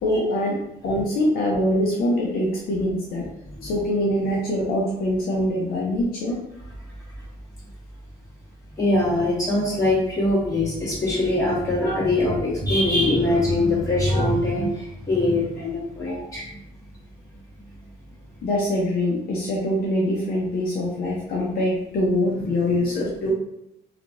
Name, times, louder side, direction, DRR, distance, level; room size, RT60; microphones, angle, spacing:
voice 1, 0.0-3.2 3.6-6.4 16.1-16.3 18.4-23.3, left 1 dB, 60° left, -3 dB, 0.7 m, -24 dB
voice 2, 8.8-16.5, left 1 dB, 20° left, -7 dB, 1.4 m, -22 dB
2.8 x 2.4 x 2.6 m, 0.82 s
cardioid pair, 110°, 17 cm